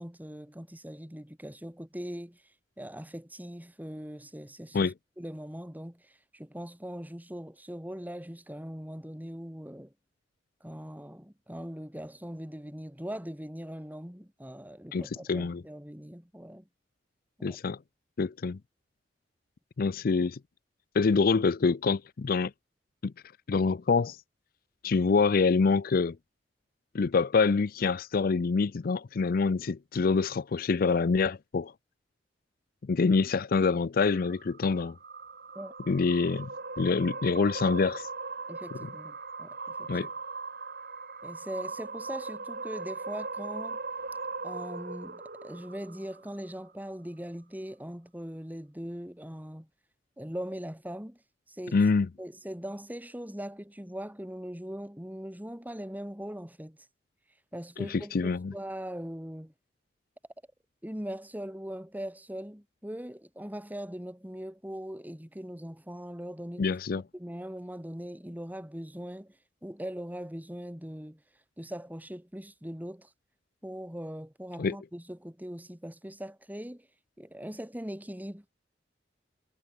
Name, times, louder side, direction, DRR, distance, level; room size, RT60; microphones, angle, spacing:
voice 1, 0.0-2.4 2.8-9.9 10.6-16.7 17.4-17.6 35.5-35.7 38.5-39.9 41.2-43.8 44.4-49.7 50.2-51.2 51.5-51.8 52.2-56.8 57.5-59.5 60.8-66.8 67.1-69.4 69.6-71.2 71.6-73.1 73.6-76.9 77.2-78.5, equal, 10° right, 3.1 m, -41 dB
voice 2, 14.9-15.6 17.4-17.8 18.2-18.6 19.8-20.4 20.9-22.5 23.0-23.1 23.5-24.2 24.8-26.2 26.9-31.7 32.8-35.0 35.9-36.5 36.8-38.1 38.8-38.9 39.9-40.1 51.7-52.1 57.8-58.5 66.6-67.0 74.6-74.8, left 4 dB, 55° left, 0.5 m, -26 dB
sound 1, 34.1-46.6, right 4 dB, 55° right, 7.2 m, -39 dB
head